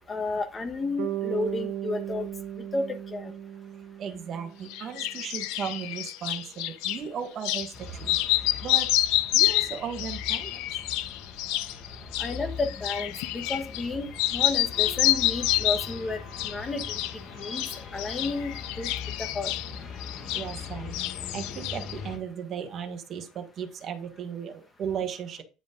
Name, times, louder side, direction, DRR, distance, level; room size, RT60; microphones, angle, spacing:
voice 1, 0.1-2.2 2.7-3.3 12.2-16.2 16.4-17.0 17.4-17.6 17.9-18.9 19.2-19.5, left 3 dB, 15° left, 6 dB, 1.3 m, -32 dB
Bass guitar, 1.0-5.1, right 12 dB, 60° right, 1.7 m, -36 dB
voice 2, 4.0-7.7 8.0-8.2 8.6-8.9 9.3-10.6 20.3-21.0 21.3-25.4, right 7 dB, 35° right, 5 dB, 1.5 m, -36 dB
sound 1, 4.7-7.0 7.4-7.7 8.0-13.9 14.1-16.0 16.3-17.1 17.4-20.7 20.9-22.0, left 15 dB, 75° left, 0.7 m, -28 dB
sound 2, 7.7-22.2, left 5 dB, 35° left, 1.9 m, -41 dB
9.6 x 5.1 x 3.8 m, 0.32 s
cardioid pair, 165°, 0 cm